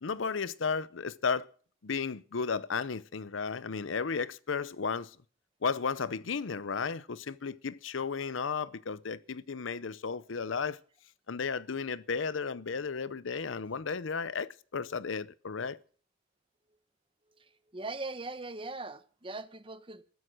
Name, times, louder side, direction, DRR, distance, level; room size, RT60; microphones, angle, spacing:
voice 1, 0.0-1.5 1.8-5.2 5.6-10.8 11.3-15.8, left 5 dB, 80° left, 0.7 m, -34 dB
voice 2, 17.7-20.0, right 3 dB, 25° right, 1.1 m, -40 dB
14.5 x 13.0 x 6.2 m
head